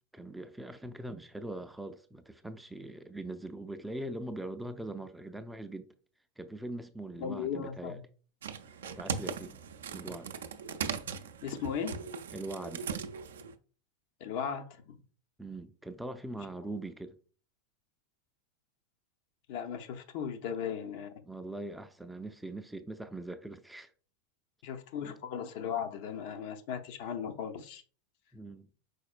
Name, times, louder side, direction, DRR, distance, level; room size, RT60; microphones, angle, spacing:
voice 1, 0.1-5.9 6.4-8.0 9.0-9.6 9.9-10.3 12.3-12.9 15.4-17.2 21.2-23.9 25.0-25.1 28.3-28.7, right 1 dB, 5° right, 0.4 m, -42 dB
voice 2, 7.2-8.0 11.4-12.0 14.2-15.0 19.5-21.1 24.6-27.8, left 7 dB, 55° left, 0.6 m, -37 dB
sound 1, 8.4-13.5, right 6 dB, 70° right, 0.4 m, -39 dB
5.0 x 4.1 x 2.4 m
hypercardioid pair, 90°, 0 cm